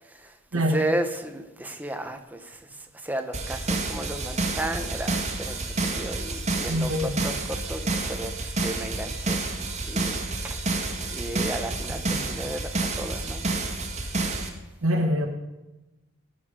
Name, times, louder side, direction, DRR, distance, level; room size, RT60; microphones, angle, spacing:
voice 1, 0.1-2.6 2.9-9.4 9.9-10.8 11.1-13.5, right 1 dB, 10° right, 0.9 m, -34 dB
sound 1, 3.3-14.5, right 2 dB, 35° right, 1.6 m, -29 dB
voice 2, 6.7-7.1 14.8-15.3, equal, 90° right, 1.5 m, -24 dB
18.0 x 7.1 x 5.1 m
head